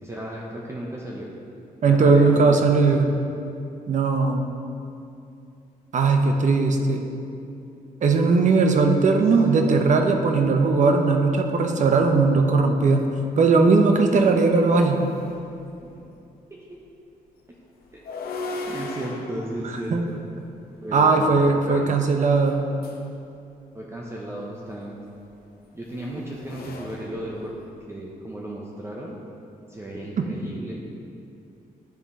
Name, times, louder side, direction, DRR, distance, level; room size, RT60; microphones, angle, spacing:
voice 1, 0.0-1.3 1.9-3.1 9.5-9.6 15.8-16.1 16.5-16.8 17.5-17.6 17.9-18.0 18.7-20.2 20.8-22.0 23.7-25.0 25.7-27.5 27.9-29.2 29.7-30.8, right 1 dB, 15° right, -3 dB, 0.7 m, -34 dB
voice 2, 1.8-3.1 3.9-4.5 5.9-7.1 8.0-13.1 13.4-15.1 19.9-20.0 20.9-22.7, right 4 dB, 50° right, 4 dB, 0.7 m, -19 dB
sound 1, 13.5-13.6 14.0-16.0 17.8-21.1 22.4-23.1 24.5-28.0, left 2 dB, 80° left, 0.7 m, -39 dB
10.5 x 3.7 x 4.1 m, 2.7 s
cardioid pair, 105°, 16 cm